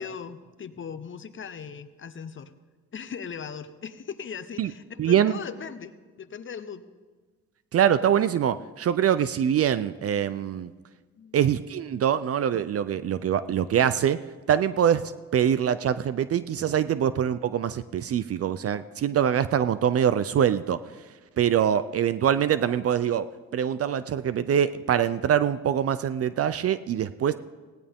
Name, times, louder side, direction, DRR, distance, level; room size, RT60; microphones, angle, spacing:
voice 1, 0.0-2.5 2.9-6.9 11.2-11.4, left 6 dB, 40° left, 12 dB, 1.0 m, -39 dB
voice 2, 5.0-5.4 7.7-10.7 11.3-14.2 14.5-21.0 21.4-27.3, right 9 dB, 50° right, 14 dB, 0.6 m, -24 dB
18.0 x 17.0 x 3.6 m, 1.4 s
cardioid pair, 90°, 30 cm